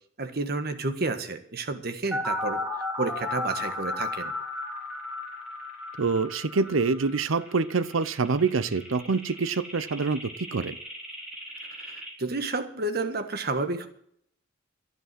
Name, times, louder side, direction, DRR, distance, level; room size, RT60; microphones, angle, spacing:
voice 1, 0.2-2.6 3.0-4.3 11.7-13.9, right 3 dB, 50° right, 1.5 m, -30 dB
sound 1, 2.1-12.1, left 2 dB, 5° right, 3.7 m, -35 dB
voice 2, 6.0-10.8, right 4 dB, 85° right, 0.7 m, -26 dB
12.5 x 10.5 x 7.6 m
head